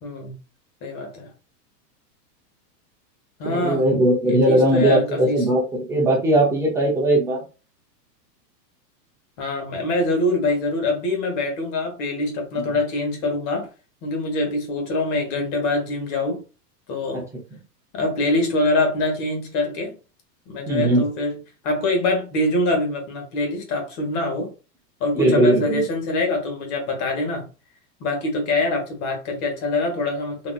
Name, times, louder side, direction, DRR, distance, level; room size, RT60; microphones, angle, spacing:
voice 1, 0.0-0.4 0.8-1.3 3.4-3.8 4.2-5.5 9.4-13.7 14.0-16.4 16.9-17.3 17.9-19.9 20.5-21.4 21.6-24.5 25.0-27.5 28.0-30.5, left 2 dB, 35° left, 1.4 m, -24 dB
voice 2, 3.4-5.6 5.9-7.4 12.5-12.7 17.1-17.2 20.7-21.0 25.1-25.8, right 1 dB, 5° right, 0.7 m, -19 dB
4.0 x 2.8 x 2.5 m
supercardioid pair, 155°, 50 cm